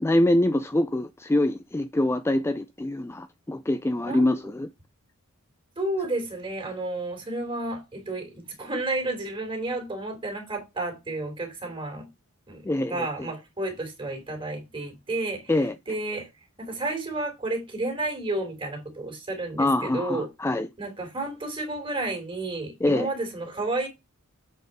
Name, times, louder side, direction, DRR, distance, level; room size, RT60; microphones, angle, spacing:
voice 1, 0.0-4.7 12.6-13.1 15.5-15.7 19.6-20.7 22.8-23.1, left 1 dB, 10° left, 0.4 m, -24 dB
voice 2, 4.1-4.4 5.8-12.1 12.5-12.6 12.9-15.5 15.9-16.3 16.6-20.3 20.8-23.9, right 2 dB, 25° right, 3.1 m, -31 dB
8.0 x 4.4 x 5.4 m
head